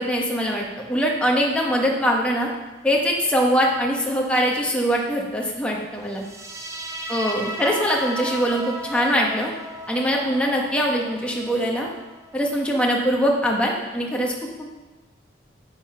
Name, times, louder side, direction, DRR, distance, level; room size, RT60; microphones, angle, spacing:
voice 1, 0.0-2.5 2.8-6.2 7.1-9.5 9.9-11.9 12.3-14.3, equal, 5° left, -2 dB, 1.4 m, -22 dB
sound 1, 6.2-13.2, right 1 dB, 15° right, 0.9 m, -36 dB
10.0 x 8.0 x 5.7 m, 1.2 s
head